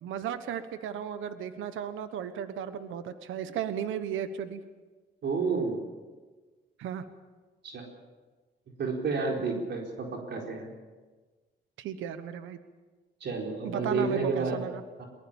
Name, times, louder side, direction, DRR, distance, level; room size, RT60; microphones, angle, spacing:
voice 1, 0.0-4.6 6.8-7.0 11.8-12.6 13.6-14.8, right 9 dB, 85° right, 10 dB, 1.3 m, -35 dB
voice 2, 5.2-5.8 7.6-7.8 8.8-10.7 13.2-14.6 15.0-15.1, right 4 dB, 60° right, 0 dB, 4.5 m, -30 dB
22.0 x 20.5 x 7.3 m, 1.3 s
cardioid pair, 90°, 20 cm